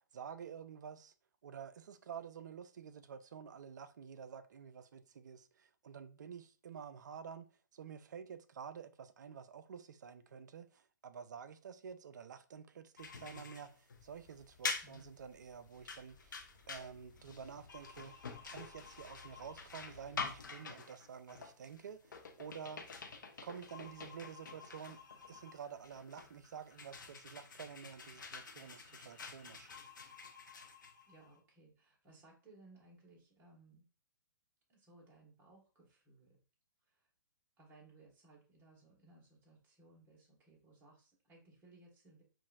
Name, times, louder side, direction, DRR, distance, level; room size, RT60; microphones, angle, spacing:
voice 1, 0.1-1.1 1.4-16.4 16.7-18.1 18.5-22.8 23.4-25.0 25.3-29.7, right 7 dB, 65° right, 0.4 m, -50 dB
sound 1, 13.0-31.4, left 4 dB, 75° left, 0.7 m, -47 dB
sound 2, 13.9-20.5, left 4 dB, 50° left, 1.4 m, -63 dB
voice 2, 14.8-15.2 31.1-33.8 34.7-36.4 36.8-37.1 37.6-42.2, right 2 dB, 20° right, 1.4 m, -62 dB
sound 3, 23.2-29.7, left 4 dB, 30° left, 1.4 m, -67 dB
5.4 x 2.6 x 2.4 m
figure-of-eight pair, 120°, 10 cm